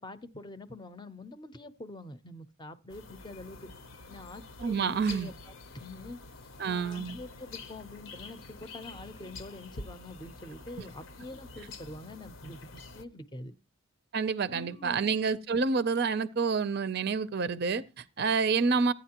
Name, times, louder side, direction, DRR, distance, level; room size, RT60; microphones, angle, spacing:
voice 1, 0.0-3.7 4.1-6.2 6.6-13.5 14.5-15.0, left 2 dB, 20° left, 0.6 m, -45 dB
sound 1, 2.9-13.1, left 3 dB, 60° left, 0.7 m, -47 dB
voice 2, 4.6-5.3 6.6-7.2 14.1-18.9, right 5 dB, 45° right, 0.5 m, -28 dB
14.5 x 9.5 x 2.9 m
head